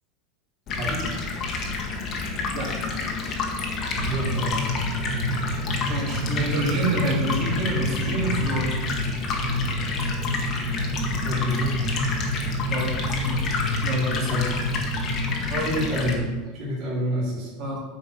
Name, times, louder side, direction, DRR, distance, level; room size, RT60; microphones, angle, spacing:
Stream, 0.7-16.1, left 3 dB, 25° left, 1.2 m, -29 dB
voice 1, 0.8-1.1 4.0-4.6 11.2-11.8 14.2-14.5 15.6-16.2 16.5-17.5, equal, 30° right, -9 dB, 2.9 m, -28 dB
Lower Pitched Windy Drone, 4.0-15.5, equal, 90° right, 1.5 m, -29 dB
voice 2, 5.9-8.8 12.7-13.4 13.8-14.3 15.5-15.8 17.6-17.8, right 1 dB, 45° right, -5 dB, 3.1 m, -28 dB
9.5 x 4.9 x 6.6 m, 1.3 s
supercardioid pair, 180°, 0 cm